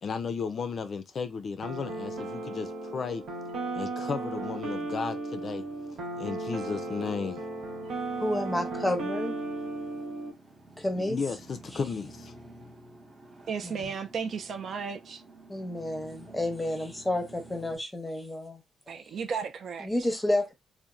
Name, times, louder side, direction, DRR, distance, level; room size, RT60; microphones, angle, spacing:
voice 1, 0.0-3.2 3.8-5.6 6.2-7.5 11.0-12.3, left 5 dB, 50° left, 0.4 m, -34 dB
sound 1, 1.6-10.3, right 2 dB, 75° right, 0.9 m, -35 dB
sound 2, 5.4-17.8, right 2 dB, 35° right, 0.9 m, -52 dB
voice 2, 8.2-9.4 10.8-11.2 13.6-13.9 15.5-18.6 19.8-20.5, left 1 dB, 10° left, 0.8 m, -30 dB
voice 3, 13.5-15.2 18.9-19.9, right 6 dB, 55° right, 0.4 m, -34 dB
2.8 x 2.1 x 2.3 m
cardioid pair, 90°, 0 cm